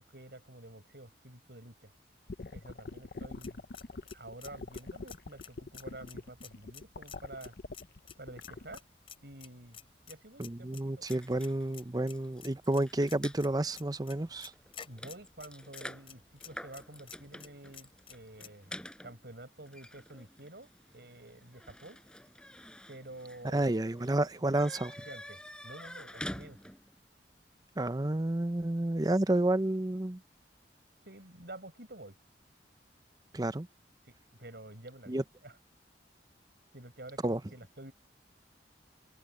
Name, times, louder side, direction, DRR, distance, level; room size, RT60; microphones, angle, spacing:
voice 1, 0.0-1.9 2.5-3.6 4.1-7.5 8.2-8.8 9.2-9.8 10.1-11.1 14.8-22.0 22.9-23.7 24.0-26.6 31.0-32.2 34.1-35.6 36.7-37.9, right 1 dB, 65° right, 7.3 m, -50 dB
sound 1, 2.3-8.8, left 3 dB, 60° left, 0.7 m, -44 dB
sound 2, 3.2-18.5, left 8 dB, 35° left, 3.4 m, -54 dB
voice 2, 10.4-14.5 23.5-24.9 27.8-30.2 33.3-33.7 35.1-35.2 37.2-37.4, right 1 dB, 20° right, 0.7 m, -30 dB
sound 3, 11.1-13.4 14.1-14.3 14.5-27.0, left 1 dB, 5° left, 5.3 m, -48 dB
head